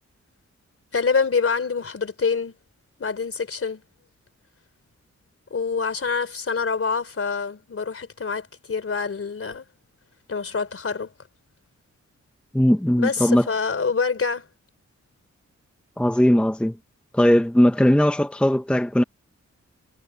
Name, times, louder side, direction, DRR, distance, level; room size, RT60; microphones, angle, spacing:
voice 1, 0.9-2.5 3.0-3.8 5.5-9.7 10.3-11.1 13.0-14.5, left 5 dB, 50° left, 3.6 m, -26 dB
voice 2, 12.5-13.5 16.0-16.8 17.1-19.0, equal, 5° left, 0.8 m, -19 dB
wide cardioid pair, 110°, 29 cm